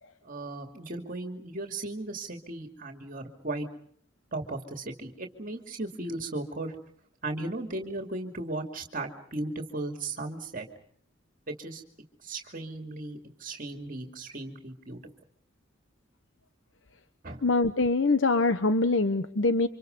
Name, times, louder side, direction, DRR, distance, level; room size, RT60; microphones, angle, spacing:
voice 1, 0.2-3.7 4.3-6.7 7.2-10.7 11.5-11.8 12.2-15.0 17.2-17.4, right 2 dB, 45° right, 4 dB, 2.5 m, -36 dB
voice 2, 17.4-19.7, left 3 dB, 75° left, 10 dB, 1.0 m, -24 dB
29.5 x 26.0 x 5.4 m, 0.64 s
head